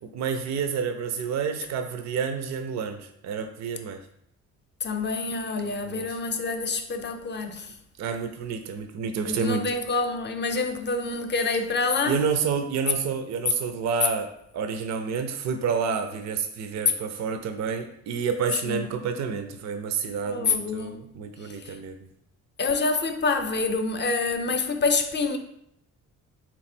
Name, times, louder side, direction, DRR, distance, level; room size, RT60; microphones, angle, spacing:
voice 1, 0.0-4.0 5.6-6.1 8.0-9.6 12.1-22.0, right 6 dB, 60° right, 0.5 m, -29 dB
voice 2, 4.8-7.8 9.2-12.2 18.6-18.8 20.2-21.0 21.4-21.8 22.6-25.4, left 4 dB, 35° left, 0.6 m, -27 dB
3.6 x 3.1 x 4.3 m
cardioid pair, 90°, 30 cm